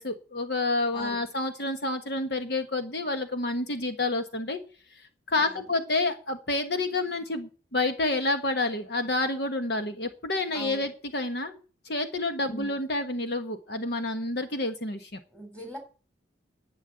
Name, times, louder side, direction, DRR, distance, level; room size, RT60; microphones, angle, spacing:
voice 1, 0.0-4.6 4.9-11.6 11.8-15.2, left 2 dB, 60° left, 7 dB, 1.3 m, -29 dB
voice 2, 0.9-1.2 5.3-5.7 10.5-10.9 12.4-12.8 15.3-15.8, right 1 dB, 10° left, 4 dB, 4.1 m, -42 dB
11.5 x 8.3 x 9.8 m, 0.38 s
head